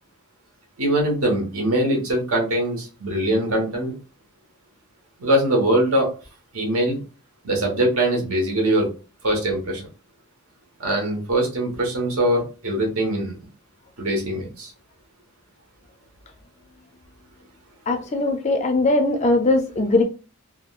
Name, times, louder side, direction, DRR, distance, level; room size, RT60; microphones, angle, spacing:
voice 1, 0.8-3.9 5.2-6.1 6.5-7.0 7.4-8.9 9.2-9.9 10.8-13.4 14.0-14.7, right 1 dB, 80° right, 0 dB, 1.1 m, -22 dB
voice 2, 17.9-20.0, left 2 dB, 30° left, 6 dB, 0.3 m, -20 dB
3.5 x 2.2 x 2.3 m, 0.34 s
head